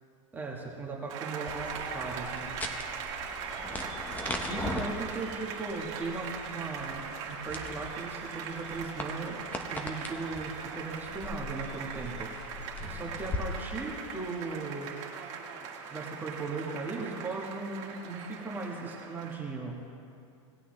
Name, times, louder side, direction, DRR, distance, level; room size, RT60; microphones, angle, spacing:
voice 1, 0.3-2.5 4.5-9.4 9.7-12.3 12.9-14.9 15.9-19.8, right 3 dB, 10° right, -2 dB, 1.3 m, -37 dB
Applause, 1.1-19.4, right 6 dB, 45° right, 1.7 m, -40 dB
sound 1, 1.5-13.4, left 2 dB, 10° left, 0.8 m, -40 dB
18.5 x 8.2 x 3.2 m, 2.5 s
supercardioid pair, 135°, 17 cm